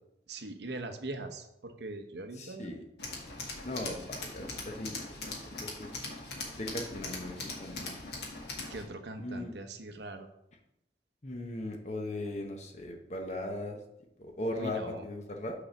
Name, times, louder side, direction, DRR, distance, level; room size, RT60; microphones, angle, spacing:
voice 1, 0.3-2.8 5.4-5.5 8.7-10.3 14.5-15.1, right 2 dB, 70° right, 6 dB, 0.8 m, -41 dB
voice 2, 2.4-2.8 3.6-5.9 6.5-8.0 9.2-9.5 11.2-13.8 14.2-15.5, left 1 dB, 40° left, 3 dB, 0.9 m, -38 dB
Tools, 3.0-8.8, left 3 dB, 65° left, 1.6 m, -41 dB
6.5 x 4.0 x 6.0 m, 0.83 s
head